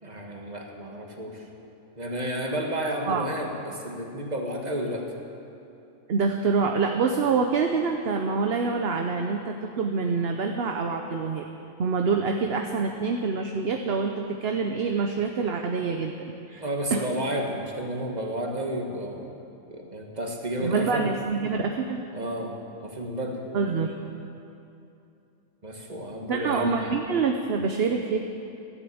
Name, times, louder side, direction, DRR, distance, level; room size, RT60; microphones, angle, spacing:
voice 1, 0.0-1.5 2.0-5.1 16.6-19.4 19.7-21.1 22.1-22.6 22.8-23.4 25.6-26.7, right 1 dB, 30° right, 1 dB, 1.8 m, -31 dB
voice 2, 6.1-11.5 11.8-16.6 16.9-17.0 20.6-22.0 23.5-23.9 26.3-28.2, right 5 dB, 50° right, 4 dB, 0.9 m, -26 dB
13.0 x 11.0 x 8.7 m, 2.8 s
omnidirectional pair, 1.5 m